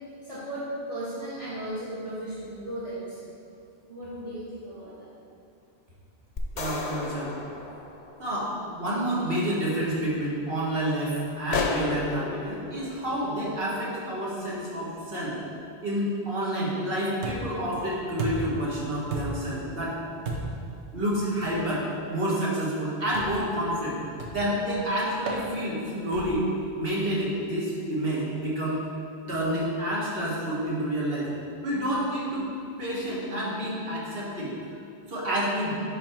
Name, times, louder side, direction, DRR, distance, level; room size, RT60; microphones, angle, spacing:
voice 1, 0.2-3.3 3.9-5.1, right 1 dB, 30° right, -11 dB, 1.5 m, -36 dB
sound 1, 6.4-8.7, left 2 dB, 50° left, 0.7 m, -37 dB
voice 2, 6.5-7.4 8.2-15.4 15.8-20.0 20.9-24.0 24.3-26.5 26.8-28.8 29.3-31.3 31.6-32.5 32.8-34.5 35.1-35.8, equal, 60° right, -6 dB, 1.7 m, -29 dB
sound 2, 11.5-14.1, left 5 dB, 80° left, 0.9 m, -32 dB
sound 3, 17.2-17.6 18.2-18.6 19.1-19.5 20.2-20.7 21.4-21.6 23.1-23.5 24.2-24.5 25.3-25.5 26.1-26.5, right 2 dB, 90° right, 1.2 m, -33 dB
9.8 x 3.5 x 4.5 m, 2.6 s
omnidirectional pair, 1.1 m